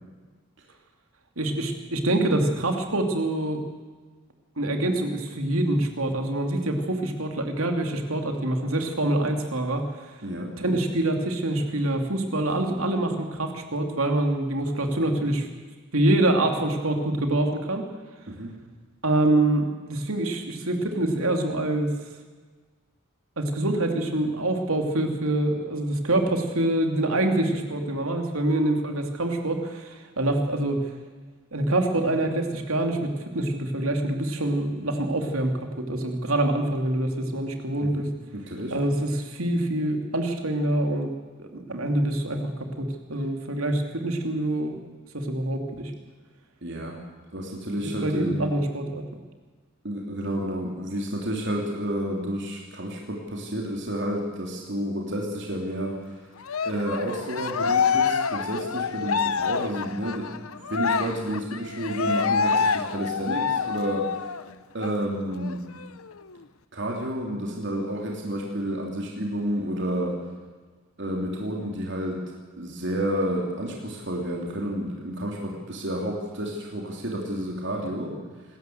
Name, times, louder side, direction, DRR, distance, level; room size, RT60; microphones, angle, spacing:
voice 1, 1.4-3.6 4.6-10.1 10.6-15.5 15.9-17.8 19.0-21.9 23.4-30.8 31.5-38.1 38.7-41.1 41.4-44.8 45.1-45.9 47.8-49.0, right 1 dB, 85° right, 4 dB, 2.9 m, -25 dB
voice 2, 38.3-38.7 46.6-47.0 47.3-48.5 49.8-56.1 56.6-60.4 60.7-64.3 64.7-65.6 66.7-70.2 71.0-78.2, equal, 55° right, -1 dB, 3.2 m, -30 dB
Cheering, 56.4-64.4 64.8-65.0 65.3-66.3, left 5 dB, 90° left, 0.9 m, -27 dB
26.5 x 13.5 x 8.0 m, 1.4 s
head